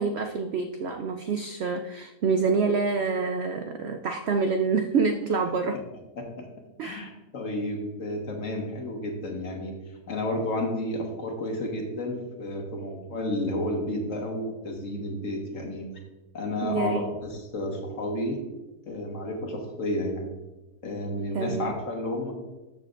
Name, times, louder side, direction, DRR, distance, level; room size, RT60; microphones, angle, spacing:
voice 1, 0.0-5.8 6.8-7.1 16.6-17.0 21.3-21.7, right 4 dB, 80° right, 6 dB, 0.5 m, -27 dB
voice 2, 6.2-6.5 6.8-9.7 10.1-15.9 16.3-18.4 18.9-20.3 20.8-22.3, left 1 dB, 55° left, 2 dB, 1.7 m, -31 dB
13.0 x 6.6 x 2.5 m, 1.1 s
omnidirectional pair, 1.7 m